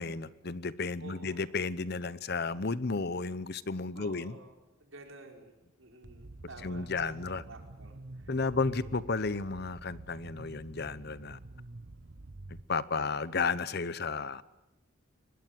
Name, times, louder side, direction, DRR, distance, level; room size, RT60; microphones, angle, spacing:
voice 1, 0.0-4.4 6.6-7.4 8.3-11.4 12.7-14.4, left 4 dB, 50° left, 16 dB, 0.9 m, -33 dB
voice 2, 1.0-1.4 3.9-4.5 4.8-9.0 13.0-13.3, right 2 dB, 75° right, 3 dB, 5.1 m, -51 dB
sound 1, 6.0-12.6, right 2 dB, 60° right, 1.0 m, -48 dB
23.5 x 20.5 x 9.4 m, 0.98 s
head